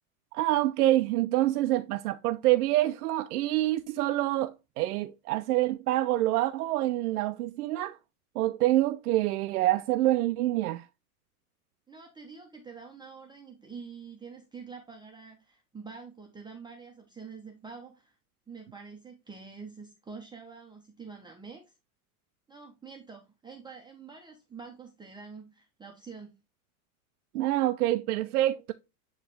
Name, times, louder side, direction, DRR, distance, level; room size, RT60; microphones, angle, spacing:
voice 1, 0.3-8.0 8.4-10.9 27.3-28.7, right 15 dB, 85° right, 0.6 m, -26 dB
voice 2, 11.9-18.2 18.5-21.6 22.5-26.3, right 5 dB, 10° right, 0.8 m, -46 dB
9.3 x 3.2 x 3.3 m
supercardioid pair, 125°, 45 cm